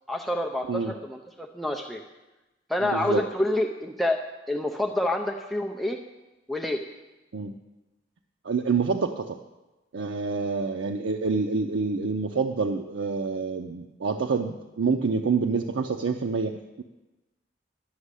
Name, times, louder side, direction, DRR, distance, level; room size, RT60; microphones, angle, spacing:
voice 1, 0.1-2.0 2.7-4.2 4.5-6.0 6.5-6.8, left 1 dB, ahead, 1 dB, 0.5 m, -27 dB
voice 2, 2.8-3.2 7.3-7.5 8.4-9.4 9.9-16.8, right 4 dB, 90° right, 4 dB, 0.6 m, -27 dB
11.5 x 6.2 x 8.2 m, 1.1 s
head